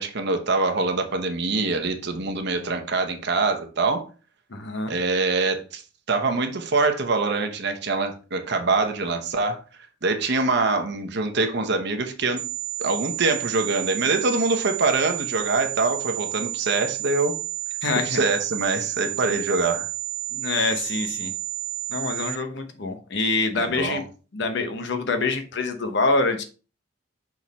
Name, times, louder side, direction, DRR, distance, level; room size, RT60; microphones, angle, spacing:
voice 1, 0.0-4.1 4.9-5.8 6.1-9.6 10.0-12.4 12.8-17.3 18.0-19.9 23.6-24.0, right 3 dB, 60° right, 5 dB, 0.9 m, -24 dB
voice 2, 4.5-4.9 17.8-18.2 20.3-21.3 21.9-24.0 24.3-26.4, left 3 dB, 65° left, 6 dB, 0.9 m, -25 dB
sound 1, 12.4-22.4, right 15 dB, 40° right, 0.4 m, -31 dB
6.0 x 3.7 x 4.1 m, 0.36 s
head